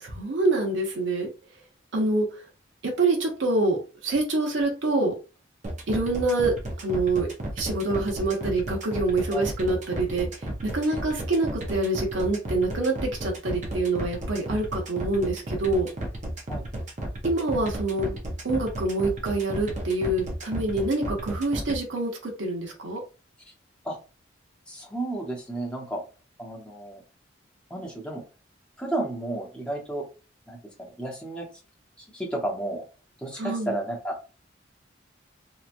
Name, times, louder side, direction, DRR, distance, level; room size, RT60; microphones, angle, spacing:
voice 1, 0.0-1.3 1.9-2.3 2.8-5.1 5.9-6.5 6.8-7.3 7.6-15.9 17.2-18.2 18.4-23.0 33.4-33.8, right 2 dB, 75° right, 1 dB, 0.8 m, -26 dB
sound 1, 5.6-21.8, right 1 dB, 40° right, 0.6 m, -33 dB
voice 2, 24.7-26.0 26.4-27.0 27.7-28.2 28.8-30.0 30.5-31.5 32.0-32.8 33.2-34.1, right 1 dB, 5° left, -2 dB, 0.8 m, -32 dB
2.9 x 2.3 x 2.5 m, 0.32 s
head